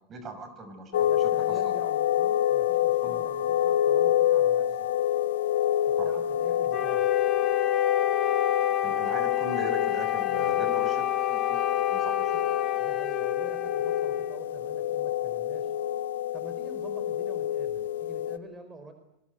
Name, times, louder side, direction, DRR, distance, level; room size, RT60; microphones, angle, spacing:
voice 1, 0.1-1.7 3.0-3.2 6.0-6.1 8.8-12.4, right 2 dB, 30° right, 9 dB, 6.2 m, -40 dB
sound 1, 0.9-18.4, left 11 dB, 80° left, 1.3 m, -27 dB
voice 2, 1.0-4.8 5.9-7.1 10.3-10.7 12.8-15.7 16.3-18.9, right 2 dB, 15° right, 7 dB, 4.6 m, -47 dB
Wind instrument woodwind instrument, 6.7-14.4, left 12 dB, 40° left, 1.7 m, -30 dB
26.0 x 22.5 x 8.1 m, 0.84 s
hypercardioid pair, 100°, 0 cm